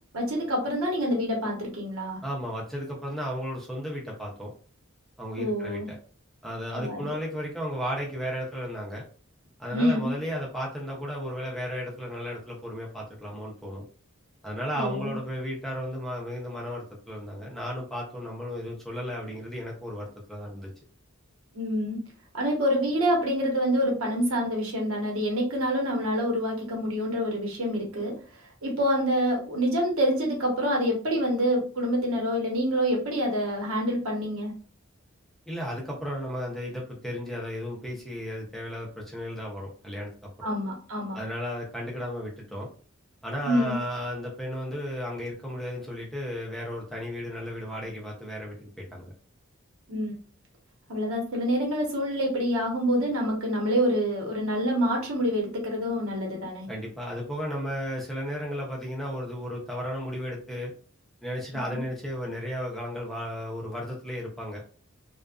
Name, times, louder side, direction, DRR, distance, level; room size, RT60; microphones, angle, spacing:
voice 1, 0.1-2.2 5.4-5.9 6.8-7.1 9.7-10.1 14.7-15.2 21.5-22.0 22.3-28.1 28.6-34.5 40.4-41.2 43.4-43.8 49.9-50.1 50.9-56.7, equal, 85° right, 0 dB, 1.0 m, -26 dB
voice 2, 2.2-4.5 5.2-6.0 6.4-9.0 9.6-13.8 14.4-20.7 35.5-40.5 41.1-42.7 43.2-49.1 56.7-60.7 61.2-64.6, equal, ahead, -3 dB, 0.5 m, -34 dB
2.5 x 2.3 x 2.3 m, 0.40 s
head